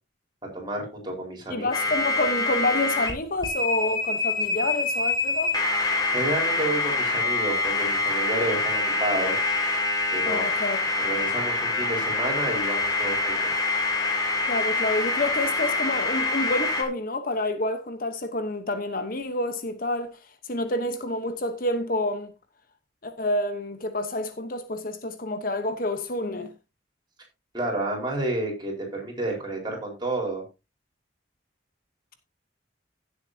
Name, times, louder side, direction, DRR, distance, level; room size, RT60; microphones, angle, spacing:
voice 1, 0.5-1.7 6.1-9.4 10.1-10.4 11.0-13.5 27.5-30.4, right 1 dB, 25° right, 4.7 m, -30 dB
voice 2, 1.5-5.6 10.3-10.8 14.5-20.2 20.4-22.3 23.0-26.5, left 1 dB, 50° left, 1.1 m, -28 dB
sound 1, 1.7-3.1 3.4-16.8, left 2 dB, 20° left, 2.2 m, -25 dB
16.5 x 7.5 x 2.8 m
head